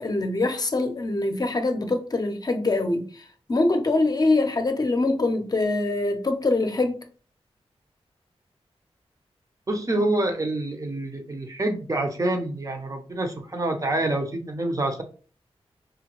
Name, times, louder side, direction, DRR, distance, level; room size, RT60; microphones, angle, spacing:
voice 1, 0.0-3.2 3.5-7.0, left 2 dB, 40° left, 0.6 m, -24 dB
voice 2, 9.7-15.0, right 2 dB, 30° right, 0.7 m, -27 dB
4.9 x 2.2 x 2.9 m
wide cardioid pair, 105°, 11 cm